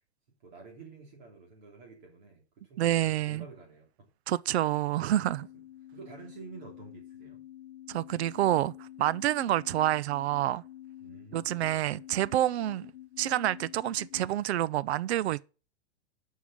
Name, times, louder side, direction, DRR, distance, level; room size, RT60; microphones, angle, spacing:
voice 1, 0.4-4.1 5.0-5.3 5.9-7.4 11.0-12.0, right 4 dB, 45° right, 3.0 m, -50 dB
voice 2, 2.8-3.4 4.3-5.5 7.9-10.6 11.3-12.9 13.2-15.4, right 13 dB, 75° right, 0.6 m, -28 dB
sound 1, 4.7-14.3, left 12 dB, 85° left, 0.8 m, -49 dB
11.0 x 5.6 x 6.0 m
supercardioid pair, 180°, 32 cm